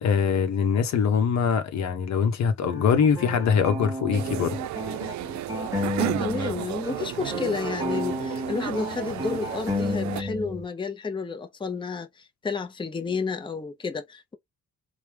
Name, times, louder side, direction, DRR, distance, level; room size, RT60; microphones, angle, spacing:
voice 1, 0.0-4.6, left 6 dB, 65° left, 0.9 m, -23 dB
sound 1, 2.7-6.6 6.8-10.6, left 1 dB, 10° right, 1.1 m, -32 dB
sound 2, 4.1-10.2, right 14 dB, 70° right, 0.5 m, -33 dB
voice 2, 6.0-14.3, left 5 dB, 15° left, 0.7 m, -31 dB
3.3 x 2.2 x 3.3 m
cardioid pair, 90°, 30 cm